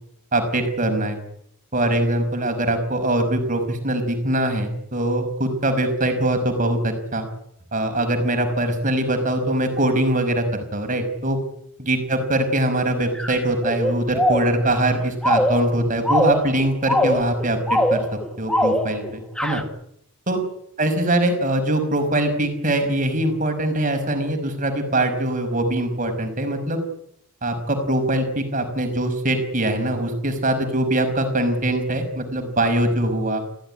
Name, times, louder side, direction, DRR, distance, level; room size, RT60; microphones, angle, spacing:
voice 1, 0.3-1.2 1.7-7.2 7.7-10.4 10.7-11.4 11.8-18.0 18.4-19.6 20.3-20.4 20.8-26.8 27.4-33.4, right 1 dB, 35° right, 6 dB, 5.4 m, -22 dB
sound 1, 13.1-19.1 19.4-19.6, left 1 dB, 5° left, 1.7 m, -22 dB
26.5 x 16.0 x 10.0 m, 0.73 s
head